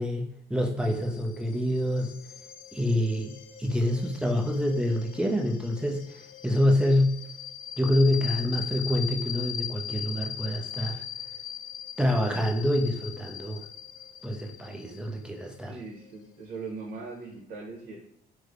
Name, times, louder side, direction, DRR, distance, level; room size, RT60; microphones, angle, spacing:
voice 1, 0.0-2.1 2.7-6.1 6.4-7.2 7.8-11.0 12.0-13.6 14.2-15.7, left 1 dB, 5° right, 1 dB, 0.5 m, -26 dB
sound 1, 0.8-17.1, left 9 dB, 55° left, 0.4 m, -41 dB
voice 2, 15.7-18.0, right 4 dB, 70° right, -4 dB, 0.9 m, -40 dB
3.2 x 2.1 x 3.6 m, 0.70 s
cardioid pair, 110°, 17 cm